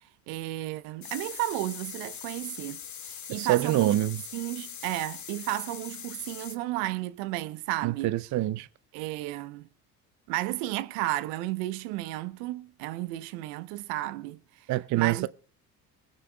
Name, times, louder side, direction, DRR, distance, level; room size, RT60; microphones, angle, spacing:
voice 1, 0.3-3.9 4.3-8.1 8.9-9.7 10.3-14.7 14.9-15.3, right 16 dB, 65° right, 0.8 m, -33 dB
sound 1, 1.0-6.6, left 8 dB, 40° left, 1.7 m, -42 dB
voice 2, 3.3-4.2 7.8-8.7 14.7-15.3, right 15 dB, 40° right, 0.6 m, -26 dB
24.0 x 9.8 x 2.3 m
hypercardioid pair, 65°, 47 cm